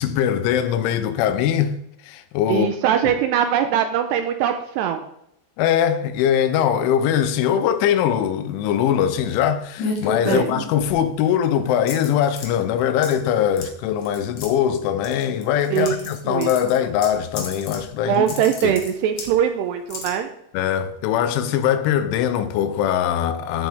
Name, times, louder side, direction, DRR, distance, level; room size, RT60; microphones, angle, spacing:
voice 1, 0.0-1.8 2.0-2.7 5.6-18.3 18.6-18.8 20.5-23.7, left 9 dB, 85° left, 3.3 m, -21 dB
voice 2, 2.5-5.0 10.3-10.5 15.7-16.5 18.1-20.3, right 9 dB, 85° right, 2.5 m, -22 dB
sound 1, 9.8-11.1 11.9-12.5 13.0-13.3 13.6-13.7 14.0-14.5 15.0-16.2 16.4-17.8 18.1-19.3 19.9-20.1, left 4 dB, 55° left, 3.1 m, -30 dB
14.5 x 8.1 x 3.6 m
omnidirectional pair, 5.4 m